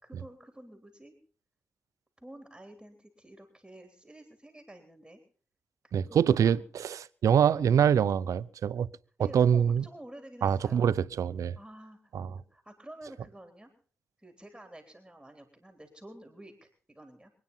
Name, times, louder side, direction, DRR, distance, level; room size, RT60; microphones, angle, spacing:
voice 1, 0.0-1.2 2.2-5.2 5.9-6.7 7.4-8.2 9.2-10.9 11.6-13.7 14.2-17.3, right 1 dB, 10° right, 3.6 m, -50 dB
voice 2, 5.9-8.9 9.3-9.8 10.4-11.6 12.1-12.3, right 8 dB, 80° right, 0.7 m, -25 dB
24.0 x 9.7 x 5.5 m
cardioid pair, 65°, 6 cm